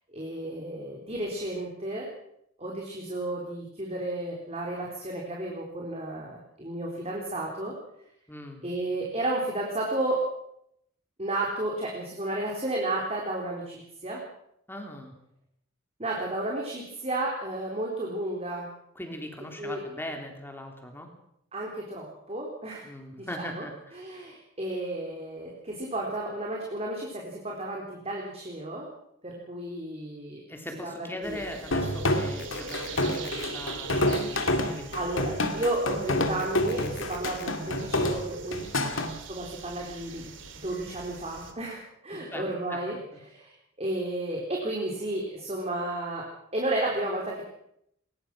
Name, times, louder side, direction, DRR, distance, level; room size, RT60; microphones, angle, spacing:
voice 1, 0.1-2.1 2.6-7.7 8.6-10.3 11.2-14.2 16.0-18.7 19.6-19.8 21.5-22.8 23.2-23.6 23.9-28.9 29.2-30.4 30.9-31.4 34.9-38.6 39.3-43.0 43.2-43.5 43.8-47.4, right 1 dB, 30° right, -1 dB, 4.0 m, -32 dB
voice 2, 8.3-8.6 14.7-15.1 18.9-21.1 22.8-23.7 30.5-35.1 38.8-39.1 42.1-42.4 42.7-42.8 43.1-43.2, left 1 dB, 10° left, 3 dB, 3.3 m, -40 dB
sound 1, 31.2-41.5, right 3 dB, 65° right, 2.7 m, -42 dB
sound 2, 31.7-39.1, left 1 dB, 75° left, 2.6 m, -27 dB
sound 3, 32.4-33.4 36.4-37.4, left 7 dB, 55° left, 2.4 m, -46 dB
21.5 x 20.5 x 6.2 m, 0.75 s
head